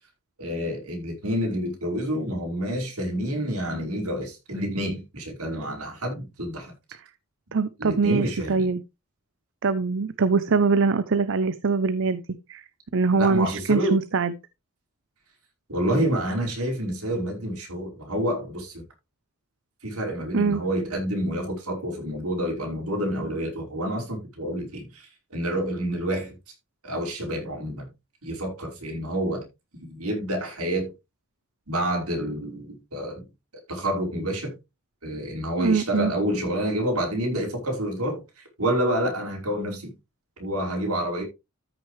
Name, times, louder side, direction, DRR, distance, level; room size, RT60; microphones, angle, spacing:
voice 1, 0.4-6.7 7.8-8.7 13.2-14.0 15.7-18.8 19.8-26.3 26.8-27.8 28.2-29.5 29.8-30.9 31.7-33.2 33.7-34.5 35.0-39.9 40.4-41.2, equal, 75° right, 5.1 m, -28 dB
voice 2, 7.5-8.8 9.6-12.2 12.5-12.6 12.9-14.3 20.3-20.6 35.6-36.1, right 4 dB, 60° right, 0.7 m, -23 dB
13.5 x 6.3 x 3.2 m
head